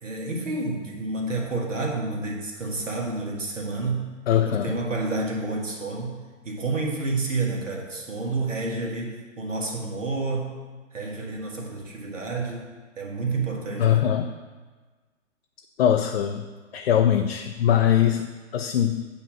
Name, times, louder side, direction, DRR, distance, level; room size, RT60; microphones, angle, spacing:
voice 1, 0.0-4.1 4.5-6.2 6.5-10.5 10.9-12.6 13.0-14.1, right 3 dB, 80° right, -1 dB, 1.6 m, -29 dB
voice 2, 4.3-4.7 13.8-14.3 15.8-16.4 16.7-19.1, left 10 dB, 55° left, 5 dB, 0.5 m, -22 dB
8.3 x 3.0 x 6.0 m, 1.4 s
figure-of-eight pair, 130°, 37 cm